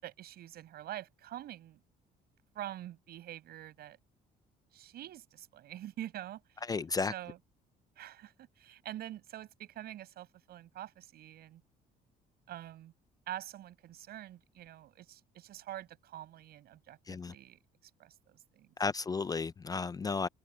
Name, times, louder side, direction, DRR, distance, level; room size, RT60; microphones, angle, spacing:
voice 1, 0.0-1.8 2.5-4.0 4.7-6.6 7.1-7.4 8.0-11.6 12.5-12.9 13.3-17.6 18.0-18.7, right 13 dB, 70° right, 6.6 m, -46 dB
voice 2, 6.7-7.1 17.1-17.3 18.8-20.3, left 4 dB, 20° left, 0.4 m, -33 dB
cardioid pair, 110°, 17 cm